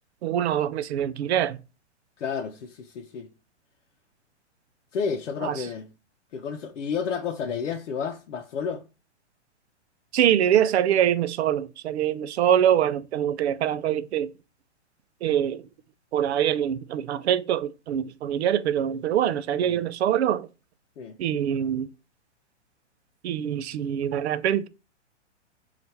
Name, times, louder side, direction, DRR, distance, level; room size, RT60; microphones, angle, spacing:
voice 1, 0.2-1.6 5.4-5.7 10.1-14.3 15.2-15.7 16.1-20.5 21.2-21.9 23.2-24.7, right 10 dB, 65° right, 0.5 m, -24 dB
voice 2, 2.2-3.3 4.9-5.9 6.3-8.8 19.6-19.8 21.0-21.2, left 6 dB, 80° left, 0.7 m, -31 dB
4.3 x 2.5 x 4.0 m
hypercardioid pair, 130°, 36 cm